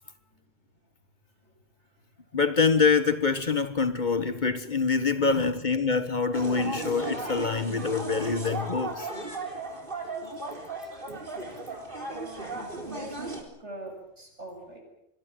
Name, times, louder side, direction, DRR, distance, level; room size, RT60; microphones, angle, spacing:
voice 1, 0.0-0.4 1.4-2.3 12.5-14.8, right 1 dB, 80° right, 7.9 m, -45 dB
voice 2, 2.3-9.1, left 5 dB, 40° left, 1.4 m, -25 dB
sound 1, 6.3-13.4, right 2 dB, 50° right, 4.4 m, -36 dB
25.5 x 21.5 x 7.7 m
omnidirectional pair, 1.2 m